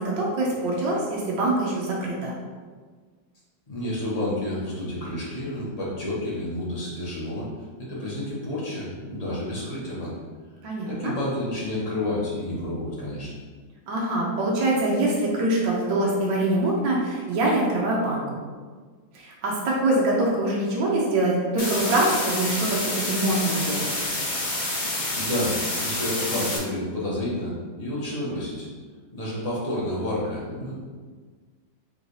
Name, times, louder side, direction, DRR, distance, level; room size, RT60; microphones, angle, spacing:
voice 1, 0.0-2.3 10.6-11.1 13.9-18.4 19.1-23.9, right 2 dB, 75° right, -4 dB, 1.4 m, -24 dB
voice 2, 3.7-7.5 7.8-10.1 10.9-13.3 25.1-28.7 29.1-30.7, left 1 dB, 25° left, -7 dB, 0.9 m, -30 dB
sound 1, 21.6-26.6, left 2 dB, 55° left, 0.5 m, -28 dB
3.7 x 3.1 x 3.9 m, 1.5 s
omnidirectional pair, 2.1 m